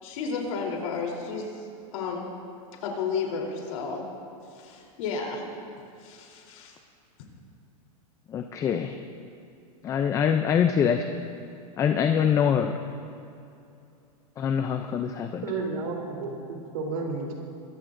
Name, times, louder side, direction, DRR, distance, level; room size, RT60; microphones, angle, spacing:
voice 1, 0.0-1.5 1.9-2.3 2.8-4.0 4.5-5.4 6.0-6.7, left 5 dB, 65° left, 0 dB, 3.4 m, -32 dB
voice 2, 8.3-8.9 9.8-11.1 11.8-12.7 14.4-15.4, left 8 dB, 15° left, 6 dB, 0.4 m, -24 dB
voice 3, 15.4-17.3, right 3 dB, 65° right, 0 dB, 3.4 m, -32 dB
22.0 x 14.5 x 2.6 m, 2.7 s
supercardioid pair, 150°, 19 cm